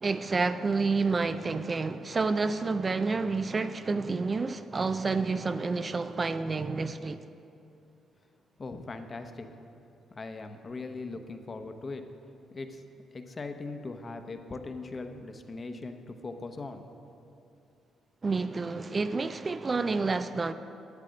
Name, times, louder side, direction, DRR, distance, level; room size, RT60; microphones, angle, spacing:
voice 1, 0.0-7.3 18.2-20.5, right 4 dB, 30° right, 0.4 m, -29 dB
voice 2, 8.6-9.5 10.1-12.0 12.5-12.8 13.1-16.8, left 3 dB, 35° left, 0.9 m, -40 dB
11.5 x 7.3 x 6.4 m
cardioid pair, 90°, 0 cm